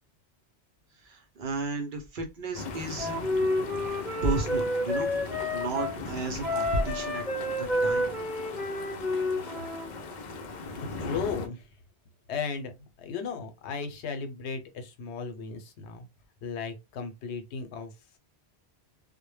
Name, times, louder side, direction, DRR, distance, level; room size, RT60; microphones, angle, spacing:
voice 1, 1.0-3.5 4.2-5.1 5.5-7.2 7.6-8.1, right 2 dB, 60° right, 0.6 m, -33 dB
sound 1, 2.5-11.5, left 3 dB, 55° left, 0.5 m, -39 dB
Wind instrument woodwind instrument, 3.0-6.0 6.4-9.9, left 1 dB, ahead, 0.7 m, -30 dB
voice 2, 10.7-11.7 12.3-16.1 16.4-18.2, left 5 dB, 85° left, 0.9 m, -36 dB
2.1 x 2.1 x 3.1 m
omnidirectional pair, 1.1 m